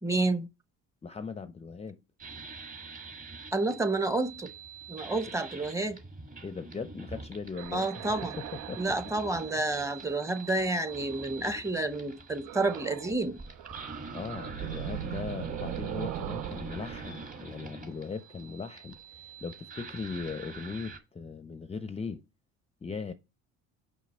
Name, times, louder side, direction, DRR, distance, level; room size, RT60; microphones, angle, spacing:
voice 1, 0.0-0.5 3.5-4.5 4.9-6.0 7.7-8.4 8.8-13.4, right 2 dB, 10° right, 0.9 m, -29 dB
voice 2, 1.0-2.0 6.4-9.0 9.5-9.7 14.1-22.2 22.8-23.1, left 5 dB, 20° left, 0.6 m, -39 dB
sound 1, 2.2-21.0, right 4 dB, 25° right, 1.5 m, -45 dB
sound 2, 7.5-11.3 12.4-13.2 13.5-18.4, right 14 dB, 65° right, 0.5 m, -41 dB
5.9 x 5.5 x 4.2 m
supercardioid pair, 95°, 34 cm